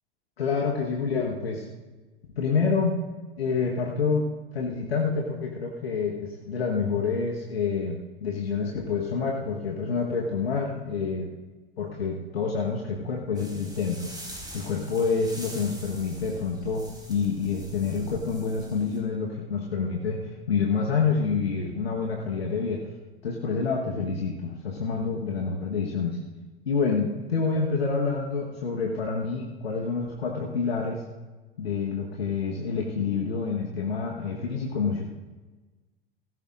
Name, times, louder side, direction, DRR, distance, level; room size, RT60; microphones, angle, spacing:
voice 1, 0.4-1.6 2.4-3.0 3.4-4.3 4.5-11.3 11.8-14.1 14.5-22.8 23.2-26.2 26.6-31.0 31.6-35.0, left 5 dB, 85° left, -1 dB, 1.3 m, -28 dB
sound 1, 13.4-19.0, right 1 dB, 15° right, 4.4 m, -44 dB
17.0 x 15.0 x 2.5 m, 1.2 s
figure-of-eight pair, 80°, 30 cm